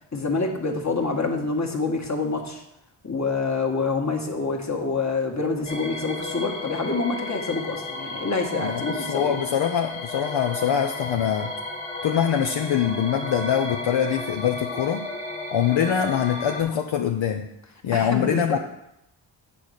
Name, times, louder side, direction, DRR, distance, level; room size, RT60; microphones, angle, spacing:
voice 1, 0.1-2.6 3.0-9.4 17.9-18.6, left 3 dB, 35° left, 1 dB, 1.6 m, -27 dB
sound 1, 5.6-16.6, left 2 dB, 15° left, 1.7 m, -33 dB
voice 2, 8.6-11.5 12.0-15.0 15.5-17.5 17.8-18.6, left 8 dB, 65° left, 4 dB, 0.7 m, -24 dB
8.5 x 4.2 x 6.4 m, 0.84 s
cardioid pair, 50°, 49 cm